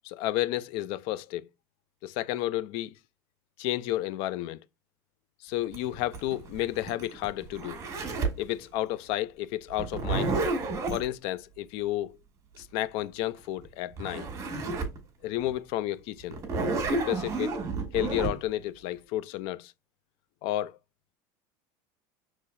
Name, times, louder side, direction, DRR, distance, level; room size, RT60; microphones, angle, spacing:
voice 1, 0.0-1.5 2.0-2.9 3.6-4.6 5.4-7.8 8.4-10.3 10.9-12.2 12.6-14.3 15.2-16.4 16.9-17.6 17.9-19.7 20.4-20.8, left 14 dB, 65° left, 0.4 m, -31 dB
Zipper (clothing), 5.7-8.4 9.8-11.0 13.6-13.7 14.0-15.0 15.4-15.5 16.3-18.3, right 3 dB, 35° right, 1.5 m, -30 dB
5.6 x 3.1 x 2.5 m
supercardioid pair, 130°, 10 cm